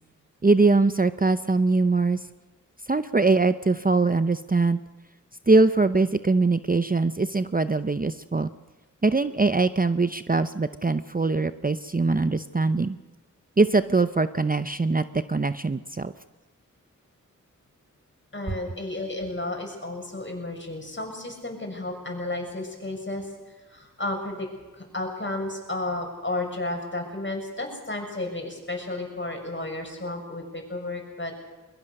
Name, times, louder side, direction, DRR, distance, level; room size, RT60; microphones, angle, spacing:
voice 1, 0.4-2.2 2.9-4.8 5.5-8.5 9.0-13.0 13.6-16.1, right 3 dB, 25° right, 12 dB, 0.7 m, -22 dB
voice 2, 18.3-31.4, left 2 dB, 35° left, 2 dB, 6.7 m, -33 dB
22.0 x 22.0 x 6.6 m, 1.2 s
wide cardioid pair, 45°, 32 cm